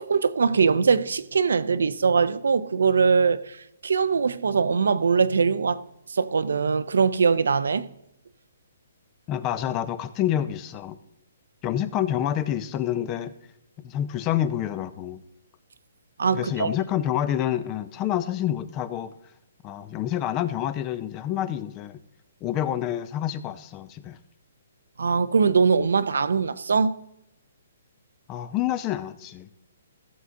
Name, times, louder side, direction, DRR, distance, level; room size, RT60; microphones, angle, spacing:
voice 1, 0.0-5.8 6.1-7.9 16.2-16.7 25.0-27.0, right 5 dB, 90° right, 0.6 m, -22 dB
voice 2, 9.3-11.0 11.6-13.3 13.8-15.2 16.3-19.1 19.6-22.0 22.4-24.2 28.3-29.5, left 11 dB, 20° left, 0.4 m, -28 dB
15.5 x 6.9 x 3.8 m
hypercardioid pair, 165°, 0 cm